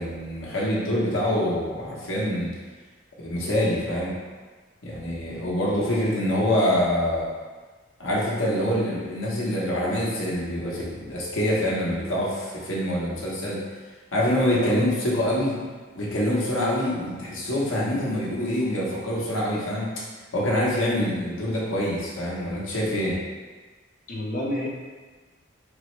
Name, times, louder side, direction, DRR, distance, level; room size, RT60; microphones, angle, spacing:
voice 1, 0.0-2.5 3.2-4.1 4.8-7.3 8.0-13.6 14.1-15.6 15.9-19.9 20.3-23.2, left 1 dB, 85° left, -6 dB, 1.2 m, -25 dB
voice 2, 14.5-14.8 24.1-24.7, left 1 dB, 40° left, -3 dB, 0.7 m, -29 dB
4.4 x 3.1 x 3.3 m, 1.4 s
head